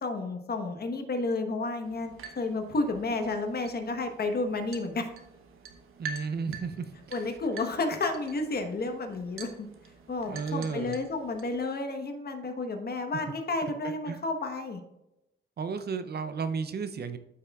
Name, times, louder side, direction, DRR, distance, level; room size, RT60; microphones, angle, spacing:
voice 1, 0.0-5.1 7.1-9.7 10.1-14.8, left 3 dB, 50° left, 5 dB, 1.1 m, -31 dB
sound 1, 1.8-11.6, right 5 dB, 80° right, 1.0 m, -47 dB
voice 2, 6.0-6.9 10.3-11.0 13.1-13.2 14.1-14.2 15.6-17.2, right 5 dB, 50° right, 10 dB, 0.6 m, -33 dB
12.5 x 5.7 x 2.4 m, 0.89 s
cardioid pair, 90°, 21 cm